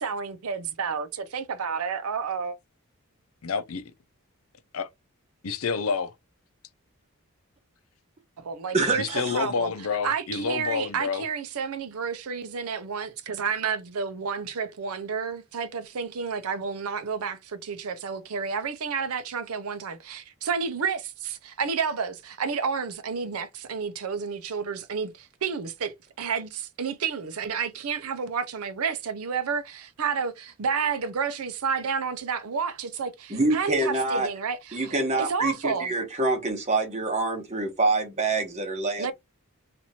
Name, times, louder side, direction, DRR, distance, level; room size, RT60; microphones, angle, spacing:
voice 1, 0.0-2.6 8.5-9.1 9.3-9.7 10.0-35.9 39.0-39.1, right 6 dB, 80° right, 0.5 m, -30 dB
voice 2, 3.4-3.8 4.7-4.9 5.4-6.1 9.0-11.2, left 5 dB, 75° left, 0.6 m, -28 dB
voice 3, 8.7-9.4 33.3-34.3 34.7-39.1, right 2 dB, 30° right, 1.0 m, -26 dB
2.9 x 2.5 x 4.1 m
head